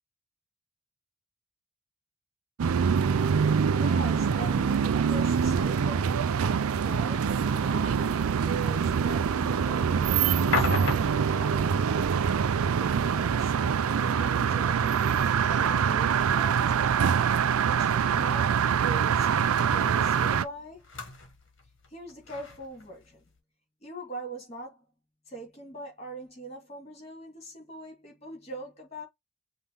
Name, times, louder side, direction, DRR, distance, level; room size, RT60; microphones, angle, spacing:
sound 1, 2.6-20.4, right 7 dB, 75° right, 0.4 m, -25 dB
voice 1, 2.9-12.2 12.8-17.1 17.6-19.3 19.7-20.9 21.9-23.2 23.8-24.8 25.3-29.1, right 1 dB, 30° left, 2.8 m, -42 dB
sound 2, 8.1-23.4, left 3 dB, 55° left, 1.5 m, -40 dB
5.5 x 2.6 x 3.4 m
head